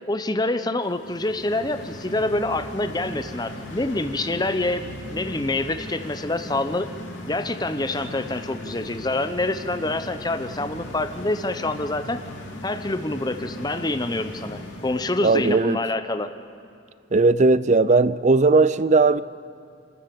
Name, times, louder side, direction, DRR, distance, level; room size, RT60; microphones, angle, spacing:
voice 1, 0.1-6.9 7.3-12.2 12.6-16.3, left 2 dB, 20° left, 0.8 m, -26 dB
sound 1, 0.9-15.4, left 1 dB, 75° left, 2.9 m, -38 dB
voice 2, 15.2-15.8 17.1-19.2, right 3 dB, 35° right, 0.5 m, -17 dB
28.5 x 13.5 x 7.1 m
head